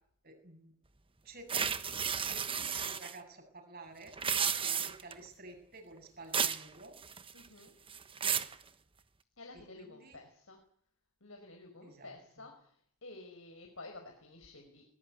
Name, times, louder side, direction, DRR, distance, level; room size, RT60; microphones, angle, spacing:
voice 1, 0.2-0.7 1.2-1.8 2.2-4.1 4.5-6.9 9.9-10.2 11.8-12.1, right 2 dB, 45° right, 4 dB, 7.7 m, -51 dB
sound 1, 1.5-3.1 4.1-5.1 6.3-6.6 7.0-7.5 7.9-8.5, right 7 dB, 25° right, 1.2 m, -33 dB
voice 2, 7.3-7.7 9.4-10.6 11.2-14.8, left 2 dB, 70° left, 4 dB, 5.1 m, -51 dB
22.5 x 21.0 x 9.7 m, 0.64 s
head